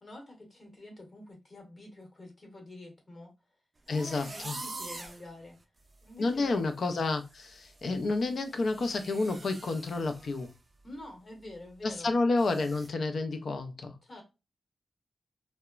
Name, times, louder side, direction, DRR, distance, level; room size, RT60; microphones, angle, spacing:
voice 1, 0.0-3.3 3.9-5.6 6.0-6.6 10.8-12.1 14.0-14.2, left 1 dB, 40° left, 1.0 m, -47 dB
voice 2, 3.9-4.6 6.2-10.5 11.8-14.0, left 3 dB, 65° left, 0.4 m, -30 dB
sound 1, 3.9-5.2 5.8-5.9 6.3-6.6 6.8-10.5 10.8-11.0 11.4-11.5 12.4-12.9, right 2 dB, 35° right, 0.4 m, -45 dB
2.9 x 2.1 x 2.3 m
wide cardioid pair, 125°, 0 cm